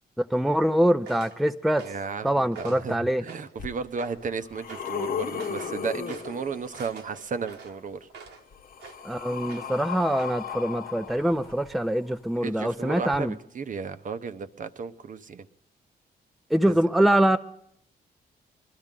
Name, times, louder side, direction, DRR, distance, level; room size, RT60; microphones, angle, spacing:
voice 1, 0.2-1.9 2.2-3.2 9.0-13.4 16.5-17.4, right 1 dB, ahead, 0.5 m, -24 dB
sound 1, 1.0-1.4 1.8-2.1 2.5-2.9 3.3-3.6 4.0-4.3 4.7-4.9 5.4-5.8 6.1-6.4 6.7-8.4 8.8-9.1 9.5-9.9 10.2-10.4, right 5 dB, 85° right, 1.3 m, -45 dB
voice 2, 1.8-8.1 12.4-15.5 16.7-16.8, right 5 dB, 50° right, 0.8 m, -34 dB
sound 2, 3.6-3.7 4.2-7.0 8.2-12.1 13.1-13.2, left 8 dB, 55° left, 1.0 m, -36 dB
20.5 x 12.0 x 3.7 m
cardioid pair, 75°, 17 cm